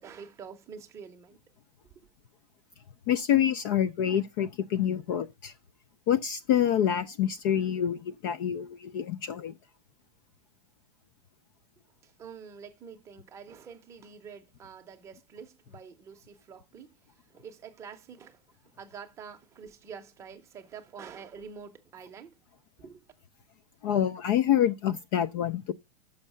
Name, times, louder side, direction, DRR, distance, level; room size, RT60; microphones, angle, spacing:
voice 1, 0.0-1.4 1.8-2.1 12.0-17.0 17.3-18.4 18.8-22.4 22.8-23.1, right 6 dB, 15° right, 0.7 m, -47 dB
voice 2, 3.1-5.5 6.1-9.5 23.8-25.7, left 10 dB, 35° left, 0.3 m, -27 dB
6.4 x 5.5 x 6.7 m
supercardioid pair, 170°, 20 cm